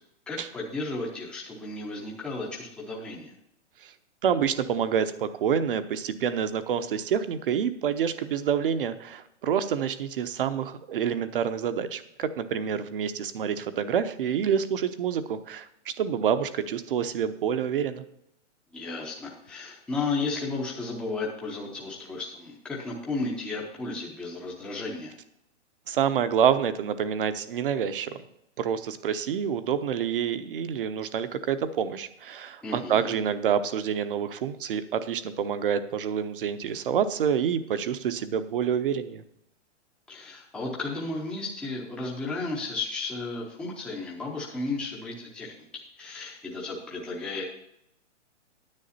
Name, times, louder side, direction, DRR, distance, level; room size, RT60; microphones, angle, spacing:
voice 1, 0.3-3.3 18.7-25.1 32.6-33.1 40.1-45.5 46.0-47.4, left 3 dB, 5° left, -2 dB, 0.7 m, -33 dB
voice 2, 4.2-18.0 25.9-28.2 28.6-39.2, right 8 dB, 50° right, 12 dB, 0.9 m, -27 dB
9.9 x 9.1 x 4.2 m, 0.78 s
hypercardioid pair, 165°, 36 cm